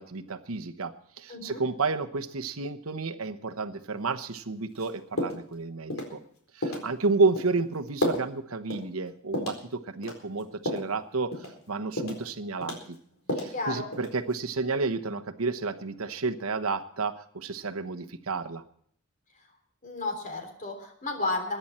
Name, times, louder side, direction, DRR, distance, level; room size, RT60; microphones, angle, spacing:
voice 1, 0.0-6.2 6.5-13.0 13.3-18.6, right 3 dB, 80° right, 7 dB, 1.1 m, -31 dB
voice 2, 1.3-1.6 13.5-13.9 19.8-21.6, left 2 dB, 40° left, 4 dB, 3.6 m, -32 dB
sound 1, 4.7-4.9 5.2-5.5 5.9-6.1 6.6-6.9 7.4-7.5 8.0-8.3 8.7-8.8 9.3-9.6 10.0-10.9 11.3-11.6 12.0-12.3 12.6-13.6 13.9-14.3, left 1 dB, 70° left, 4.2 m, -32 dB
22.0 x 10.5 x 4.4 m, 0.64 s
head